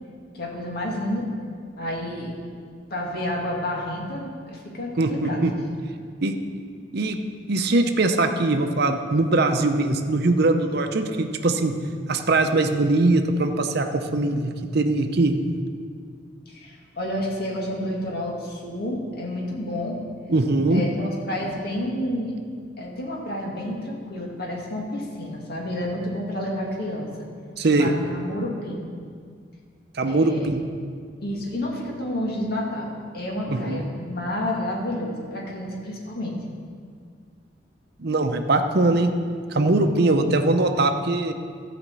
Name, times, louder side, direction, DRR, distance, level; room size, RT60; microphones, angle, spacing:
voice 1, 0.3-1.3 1.8-2.4 2.9-5.4 16.5-20.0 20.7-22.4 22.8-27.1 27.7-28.9 30.0-30.5 31.2-36.4, left 1 dB, 55° left, -2 dB, 2.0 m, -30 dB
voice 2, 5.0-5.5 6.2-6.4 6.9-7.2 7.5-11.7 12.1-15.4 20.3-20.8 27.6-27.9 29.9-30.6 33.5-33.9 38.0-39.1 39.5-41.3, right 2 dB, 60° right, 5 dB, 0.7 m, -21 dB
13.0 x 5.1 x 7.6 m, 2.1 s
head